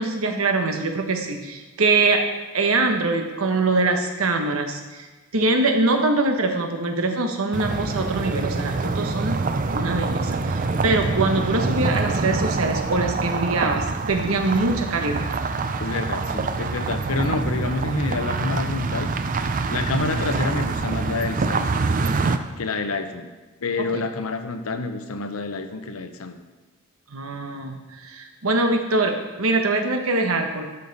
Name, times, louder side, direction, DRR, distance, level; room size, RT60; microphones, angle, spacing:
voice 1, 0.0-2.2 2.5-5.1 5.3-9.4 9.7-15.3 27.1-30.7, right 3 dB, 85° right, 4 dB, 1.1 m, -23 dB
sound 1, 7.5-22.4, right 3 dB, 40° right, 0.4 m, -25 dB
voice 2, 15.8-19.1 19.7-21.8 22.6-23.3 23.6-26.4, left 3 dB, 90° left, 8 dB, 0.8 m, -28 dB
12.0 x 5.5 x 4.1 m, 1.2 s
head